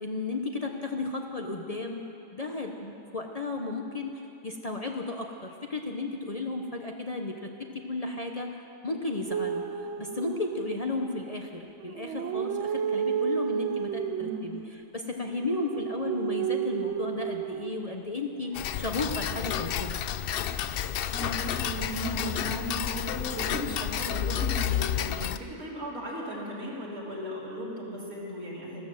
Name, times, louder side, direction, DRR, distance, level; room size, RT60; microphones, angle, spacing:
voice 1, 0.0-8.6 8.8-14.6 14.9-20.0, left 3 dB, 30° left, 2 dB, 0.8 m, -34 dB
sound 1, 9.3-11.0 11.8-14.4 15.3-17.9 19.0-19.6, right 8 dB, 65° right, 1.0 m, -32 dB
Tick-tock, 18.5-25.4, left 10 dB, 70° left, 0.5 m, -30 dB
voice 2, 21.1-28.9, right 1 dB, 85° right, -5 dB, 3.7 m, -36 dB
14.5 x 13.0 x 7.7 m, 2.7 s
omnidirectional pair, 1.5 m